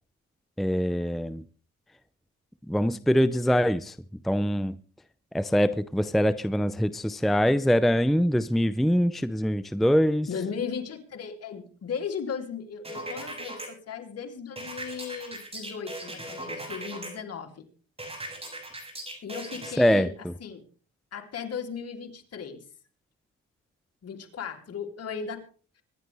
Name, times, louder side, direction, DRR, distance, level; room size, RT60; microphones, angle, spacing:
voice 1, 0.6-1.4 2.7-4.0 4.2-4.8 5.3-10.3 19.8-20.1, equal, ahead, 0.6 m, -23 dB
voice 2, 10.3-17.7 19.2-20.1 20.4-20.6 21.1-22.6 24.0-25.4, left 6 dB, 55° left, 3.1 m, -36 dB
sound 1, 12.8-13.7 14.6-17.1 18.0-19.7, right 1 dB, 20° right, 7.1 m, -38 dB
25.0 x 11.0 x 3.4 m
cardioid pair, 90°, 30 cm